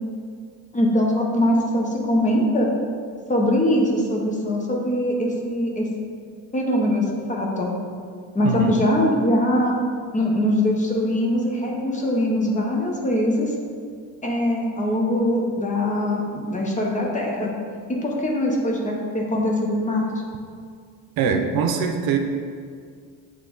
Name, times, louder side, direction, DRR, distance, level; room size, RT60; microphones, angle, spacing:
voice 1, 0.7-2.7 3.3-5.8 6.5-7.7 8.3-9.7 10.1-13.5 14.2-17.5 18.0-20.0, left 1 dB, 20° left, -1 dB, 0.8 m, -22 dB
voice 2, 21.2-22.2, right 6 dB, 75° right, 5 dB, 0.7 m, -22 dB
8.1 x 3.2 x 3.8 m, 2.1 s
cardioid pair, 145°, 36 cm